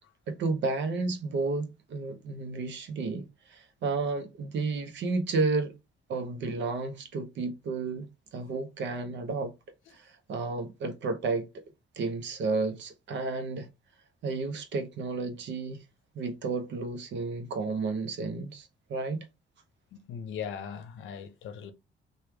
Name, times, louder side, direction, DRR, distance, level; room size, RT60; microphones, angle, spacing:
voice 1, 0.3-5.8 6.1-8.1 8.3-9.5 9.9-11.6 12.0-13.7 14.2-15.8 16.1-19.3, right 3 dB, 65° right, 0.7 m, -32 dB
voice 2, 19.9-21.7, left 7 dB, 80° left, 0.6 m, -39 dB
3.1 x 2.3 x 3.2 m
cardioid pair, 90°, 20 cm